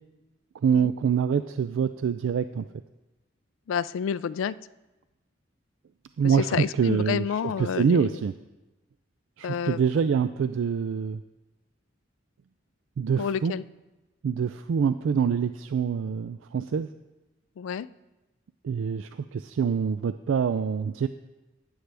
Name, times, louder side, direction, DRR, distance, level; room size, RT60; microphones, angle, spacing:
voice 1, 0.6-2.7 6.2-8.3 9.4-11.2 13.0-13.5 14.2-16.9 18.6-21.1, right 6 dB, 75° right, 11 dB, 0.3 m, -25 dB
voice 2, 3.7-4.6 6.2-8.2 9.4-10.1 13.2-13.6 17.6-17.9, left 7 dB, 90° left, 18 dB, 0.3 m, -30 dB
12.5 x 9.5 x 3.4 m, 1.1 s
head